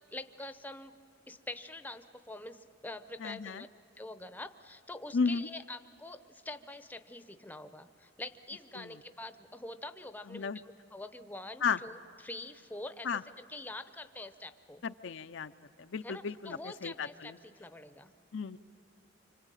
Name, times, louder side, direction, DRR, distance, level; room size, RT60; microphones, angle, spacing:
voice 1, 0.1-0.9 1.3-3.7 4.0-13.1 13.4-14.8 16.0-18.1, left 2 dB, 10° left, 11 dB, 0.7 m, -45 dB
voice 2, 3.2-3.6 5.1-5.5 8.7-8.9 10.3-10.6 11.6-11.8 13.0-13.2 14.8-15.5 15.8-17.4 18.3-18.6, left 5 dB, 65° left, 10 dB, 0.5 m, -34 dB
26.0 x 25.5 x 9.1 m, 2.6 s
head